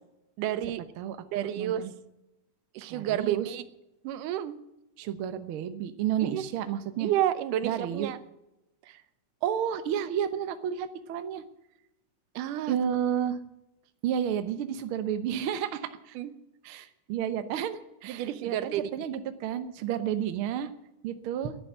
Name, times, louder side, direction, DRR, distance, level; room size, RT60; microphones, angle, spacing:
voice 1, 0.4-0.8 1.3-1.8 2.7-3.6 4.0-4.6 6.2-6.4 7.0-8.2 8.9-9.0 12.4-12.8 16.2-16.3 18.0-18.8, right 11 dB, 85° right, 13 dB, 2.4 m, -30 dB
voice 2, 1.0-1.9 2.9-3.5 5.0-7.1 7.6-8.1 9.4-11.4 12.7-13.4 14.0-16.2 16.6-20.7 21.0-21.6, right 9 dB, 65° right, 10 dB, 1.4 m, -31 dB
11.0 x 9.9 x 10.0 m, 0.90 s
omnidirectional pair, 3.6 m